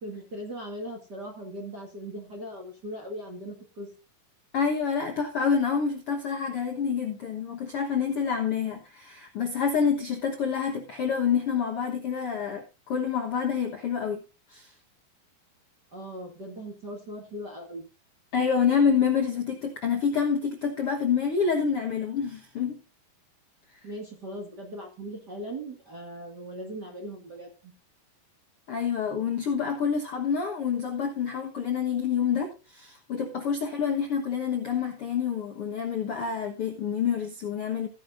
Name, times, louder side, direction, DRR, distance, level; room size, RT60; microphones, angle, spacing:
voice 1, 0.0-3.9 15.9-17.9 23.8-27.7, equal, 35° right, 1 dB, 1.8 m, -39 dB
voice 2, 4.5-14.2 14.5-14.7 18.3-22.8 28.7-37.9, left 6 dB, 60° left, 2 dB, 1.5 m, -27 dB
15.0 x 10.0 x 2.6 m, 0.31 s
omnidirectional pair, 4.4 m